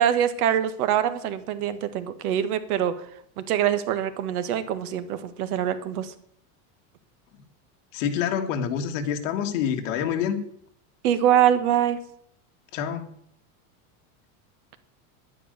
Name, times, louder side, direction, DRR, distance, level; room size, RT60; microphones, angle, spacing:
voice 1, 0.0-3.0 3.4-6.1 11.0-12.0, right 10 dB, 75° right, 12 dB, 1.6 m, -24 dB
voice 2, 7.9-10.4 12.7-13.1, left 8 dB, 55° left, 6 dB, 1.9 m, -27 dB
11.0 x 10.5 x 6.6 m, 0.66 s
supercardioid pair, 170°, 45 cm